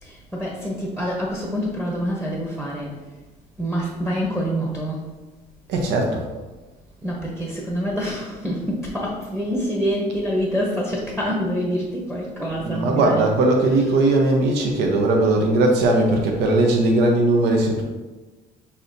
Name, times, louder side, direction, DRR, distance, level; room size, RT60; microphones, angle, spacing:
voice 1, 0.0-3.0 3.6-5.1 7.0-13.3, equal, 5° right, -3 dB, 0.8 m, -26 dB
voice 2, 5.7-6.3 12.7-17.8, right 2 dB, 85° right, 1 dB, 0.7 m, -19 dB
6.1 x 2.8 x 2.6 m, 1.2 s
cardioid pair, 110°, 17 cm